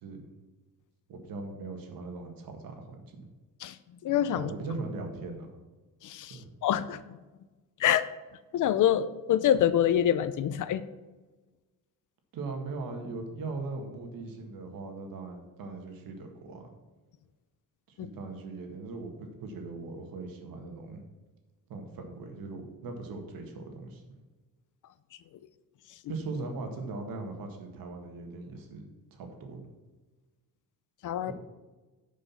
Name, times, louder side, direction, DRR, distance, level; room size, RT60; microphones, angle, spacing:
voice 1, 1.1-3.3 4.3-5.5 6.3-6.5 12.3-16.7 17.9-21.0 21.7-24.0 26.1-29.6 31.2-31.3, right 3 dB, 75° right, 4 dB, 1.9 m, -39 dB
voice 2, 4.0-4.5 6.0-7.2 7.8-8.1 8.5-10.8 18.0-18.1 31.0-31.3, left 10 dB, 60° left, 14 dB, 0.6 m, -26 dB
9.9 x 5.3 x 5.7 m, 1.2 s
cardioid pair, 145°, 35 cm